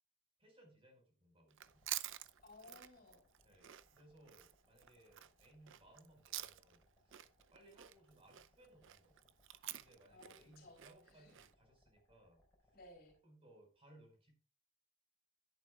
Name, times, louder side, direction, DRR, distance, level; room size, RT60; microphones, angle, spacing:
voice 1, 0.4-1.9 3.4-9.3 9.8-12.4 13.2-14.3, right 1 dB, 25° right, 2 dB, 5.0 m, -65 dB
Chewing mastication, 1.5-6.8 7.1-11.5, right 14 dB, 60° right, 0.6 m, -49 dB
sound 1, 1.6-13.2, left 1 dB, 10° left, 4.6 m, -75 dB
voice 2, 2.4-3.2 10.1-10.8 11.1-11.3 12.7-13.1, left 2 dB, 45° left, 3 dB, 3.7 m, -59 dB
12.0 x 10.5 x 2.4 m, 0.36 s
head